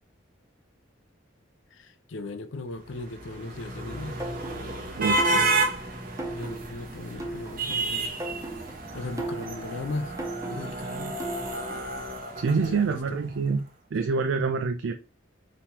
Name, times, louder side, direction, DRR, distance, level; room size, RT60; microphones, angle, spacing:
voice 1, 1.7-4.2 4.7-4.9 5.3-5.5 6.3-8.3 8.9-10.2 10.4-11.2 12.5-13.2, left 2 dB, 70° left, 0.5 m, -38 dB
sound 1, 2.9-13.2, right 2 dB, 45° right, 1.0 m, -31 dB
sound 2, 4.2-12.0, right 2 dB, 15° right, 0.6 m, -38 dB
voice 2, 5.0-5.5 12.4-13.6 13.9-14.9, right 5 dB, 70° right, 0.4 m, -26 dB
5.4 x 2.9 x 3.0 m
head